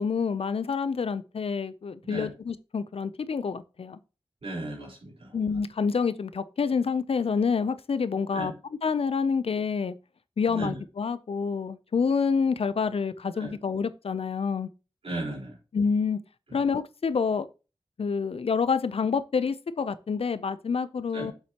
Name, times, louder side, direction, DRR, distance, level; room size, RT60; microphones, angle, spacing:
voice 1, 0.0-4.0 5.3-8.5 8.8-9.9 10.4-14.7 15.7-16.2 16.5-17.5 18.0-21.3, left 5 dB, 85° left, 0.5 m, -27 dB
voice 2, 4.4-5.4 8.3-8.5 10.5-10.8 13.3-13.5 15.0-15.6 21.1-21.3, right 2 dB, 85° right, 4.4 m, -35 dB
7.5 x 7.5 x 3.0 m
wide cardioid pair, 60°, 10 cm